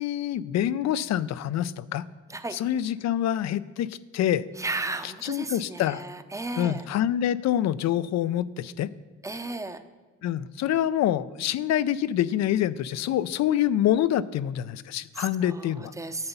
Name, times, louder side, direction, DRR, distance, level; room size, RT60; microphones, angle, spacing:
voice 1, 0.0-2.0 2.5-4.4 5.0-6.0 6.6-8.9 10.2-15.9, left 11 dB, 65° left, 17 dB, 0.4 m, -26 dB
voice 2, 4.6-6.8 9.2-9.8 15.2-16.3, right 2 dB, 10° right, 10 dB, 0.6 m, -34 dB
9.7 x 6.9 x 5.4 m, 1.4 s
cardioid pair, 90°, 30 cm